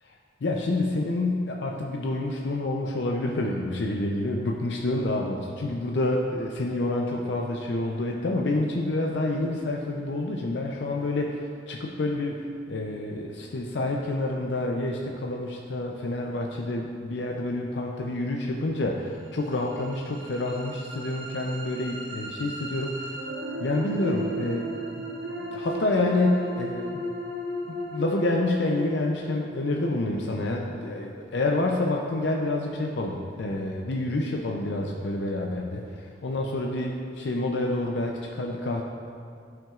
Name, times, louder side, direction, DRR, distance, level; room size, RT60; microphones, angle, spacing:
voice 1, 0.4-12.4 12.7-23.2 23.6-24.7 25.0-25.1 25.4-27.0 27.7-38.8, left 2 dB, 70° left, 0 dB, 0.5 m, -28 dB
sound 1, 19.3-31.4, right 1 dB, 85° right, 1.2 m, -36 dB
11.5 x 6.0 x 2.4 m, 2.3 s
head